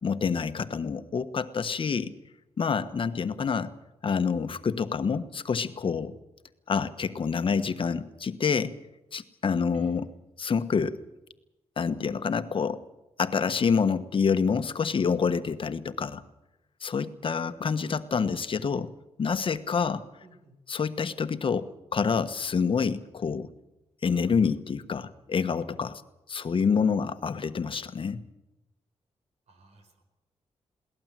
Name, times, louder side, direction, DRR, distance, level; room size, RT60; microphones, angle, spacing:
voice 1, 0.0-2.1 2.6-3.7 4.0-6.2 6.7-8.7 9.1-10.1 10.4-11.0 11.8-12.8 13.2-16.2 16.8-18.9 19.2-20.0 20.7-23.5 24.0-26.0 26.3-28.2, left 6 dB, 50° left, 10 dB, 1.3 m, -27 dB
voice 2, 20.2-20.6 29.5-30.0, right 2 dB, 75° right, 6 dB, 5.0 m, -55 dB
22.0 x 18.0 x 7.6 m, 0.95 s
cardioid pair, 95°, 11 cm